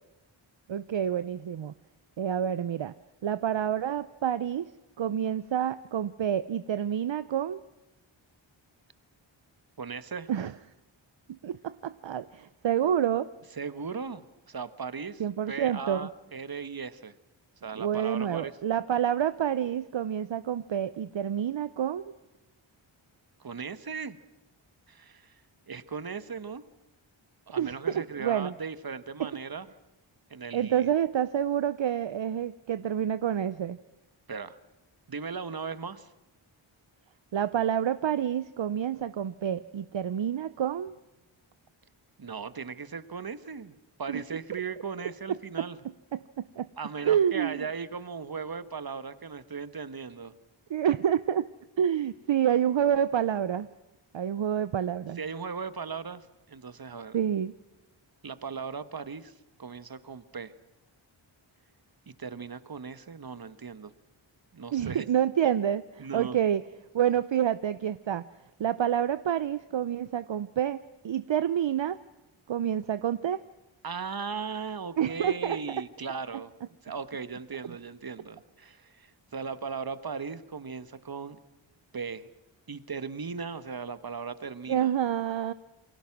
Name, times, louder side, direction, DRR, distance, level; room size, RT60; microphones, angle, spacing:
voice 1, 0.7-1.7 2.2-2.9 3.2-4.7 5.0-7.6 10.3-10.5 11.3-13.3 15.2-16.1 17.8-22.1 27.6-28.5 29.2-29.3 30.5-33.8 37.3-40.9 44.1-44.2 45.6-45.7 46.1-46.7 47.0-47.6 50.7-51.5 51.8-53.7 54.1-55.2 57.1-57.5 64.7-66.6 66.9-68.2 68.6-72.0 72.5-73.4 75.0-75.6 84.7-85.5, right 9 dB, 65° right, 14 dB, 0.8 m, -28 dB
voice 2, 9.8-10.3 13.5-15.2 15.5-17.1 17.6-18.5 23.4-24.2 24.9-25.4 25.7-26.6 27.5-29.7 30.3-30.9 34.3-34.6 35.1-36.1 42.2-45.8 46.8-50.3 55.2-57.2 58.2-59.3 59.6-60.5 62.1-63.9 64.5-65.0 66.0-66.4 73.8-76.5 76.8-81.4 81.9-82.3 82.7-84.9, right 5 dB, 45° right, 13 dB, 1.4 m, -37 dB
28.5 x 22.5 x 6.0 m, 0.99 s
wide cardioid pair, 65°, 48 cm